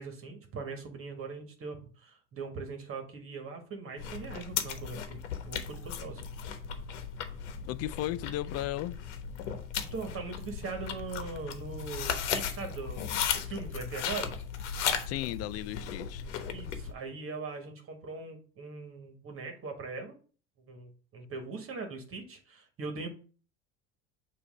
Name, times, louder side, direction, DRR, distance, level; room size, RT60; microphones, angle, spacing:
voice 1, 0.0-5.2 5.5-6.2 9.9-14.3 16.5-20.1 20.7-23.1, right 4 dB, 40° right, 1.7 m, -40 dB
sound 1, 4.0-16.9, left 8 dB, 80° left, 1.1 m, -36 dB
voice 2, 7.6-9.0 15.1-16.2, left 14 dB, 45° left, 0.4 m, -35 dB
6.9 x 2.8 x 5.3 m
hypercardioid pair, 85°, 35 cm